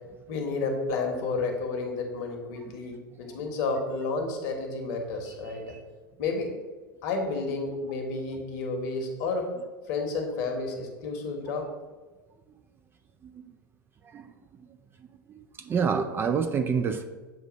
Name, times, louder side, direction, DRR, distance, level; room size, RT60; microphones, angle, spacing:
voice 1, 0.3-5.8 6.2-6.5 7.0-9.5 9.9-11.7, left 3 dB, 50° left, 3 dB, 1.3 m, -31 dB
voice 2, 15.3-17.0, right 6 dB, 20° right, 7 dB, 0.3 m, -27 dB
7.7 x 2.6 x 5.0 m, 1.3 s
figure-of-eight pair, 90°, 11 cm